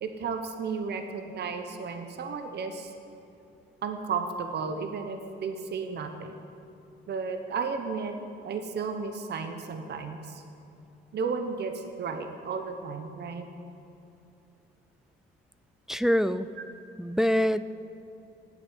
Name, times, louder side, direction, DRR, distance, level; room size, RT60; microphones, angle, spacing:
voice 1, 0.0-2.9 3.8-6.3 7.1-8.2 8.4-10.4 11.1-13.5, right 5 dB, 55° right, 6 dB, 1.0 m, -33 dB
voice 2, 15.9-16.5 17.0-17.6, equal, ahead, 14 dB, 0.3 m, -24 dB
8.9 x 8.0 x 9.2 m, 2.8 s
cardioid pair, 90°, 20 cm